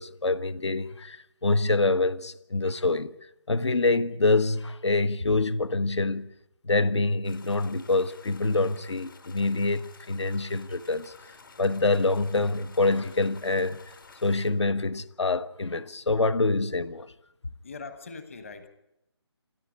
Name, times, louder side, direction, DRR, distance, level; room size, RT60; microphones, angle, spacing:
voice 1, 0.0-3.1 3.5-6.3 6.6-13.8 14.2-17.1, left 3 dB, 75° left, 1.4 m, -26 dB
sound 1, 7.2-14.5, left 4 dB, 50° left, 3.1 m, -52 dB
voice 2, 17.6-18.7, left 4 dB, 30° left, 1.4 m, -41 dB
27.5 x 13.5 x 9.9 m
hypercardioid pair, 175°, 15 cm